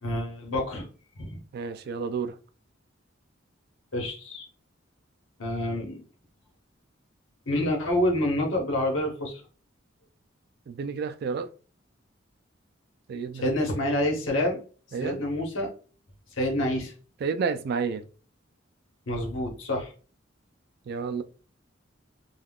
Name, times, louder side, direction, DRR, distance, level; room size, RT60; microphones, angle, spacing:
voice 1, 0.0-0.9 1.2-1.4 3.9-4.4 5.4-6.0 7.5-9.4 13.3-14.6 15.0-15.7 16.3-16.9 19.1-19.9, left 1 dB, 80° left, 1.0 m, -27 dB
voice 2, 1.5-2.3 10.7-11.5 13.1-13.6 14.9-15.2 17.2-18.0 20.9-21.2, right 5 dB, 55° right, 0.3 m, -30 dB
3.4 x 2.3 x 2.3 m
head